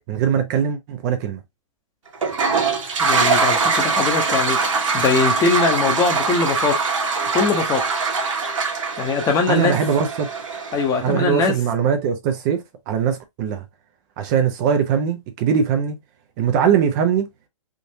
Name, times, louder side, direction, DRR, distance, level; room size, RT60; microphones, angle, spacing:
voice 1, 0.1-1.4 9.5-10.3 11.0-13.6 14.2-16.0 16.4-17.3, right 7 dB, 35° right, 0.6 m, -21 dB
Toilet flush, 2.1-11.0, right 4 dB, 70° right, 1.3 m, -22 dB
voice 2, 3.0-4.6 4.9-6.8 7.3-7.8 9.0-9.8 10.7-11.5, left 4 dB, 20° left, 0.8 m, -21 dB
3.6 x 2.5 x 2.7 m
hypercardioid pair, 125°, 17 cm